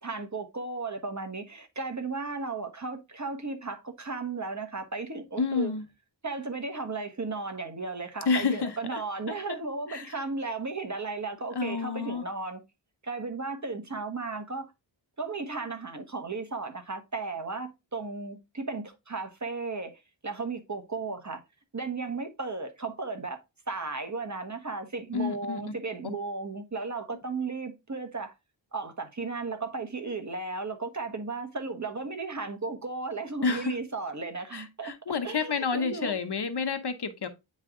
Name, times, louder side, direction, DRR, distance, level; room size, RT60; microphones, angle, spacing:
voice 1, 0.0-5.7 6.2-12.6 13.0-14.7 15.2-21.4 21.7-23.4 23.7-28.3 28.7-34.9 35.2-36.2, right 3 dB, 35° right, 1.3 m, -35 dB
voice 2, 5.4-5.8 8.3-9.0 9.3-9.6 9.9-10.1 11.5-12.2 25.1-25.6 33.4-33.7 34.5-37.3, left 5 dB, 55° left, 1.0 m, -29 dB
9.2 x 3.3 x 3.7 m
wide cardioid pair, 60°, 47 cm